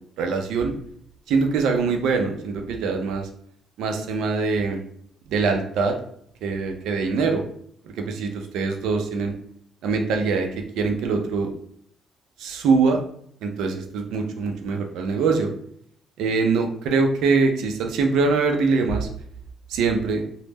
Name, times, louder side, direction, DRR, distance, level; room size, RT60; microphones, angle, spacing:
voice 1, 0.2-0.7 1.3-3.3 3.8-4.8 5.3-6.0 6.4-7.4 7.8-9.3 9.8-10.5 10.8-11.5 12.4-13.0 13.4-15.5 16.2-19.1 19.7-20.2, right 4 dB, 90° right, 4 dB, 0.4 m, -23 dB
2.0 x 2.0 x 3.3 m, 0.64 s
cardioid pair, 90°, 0 cm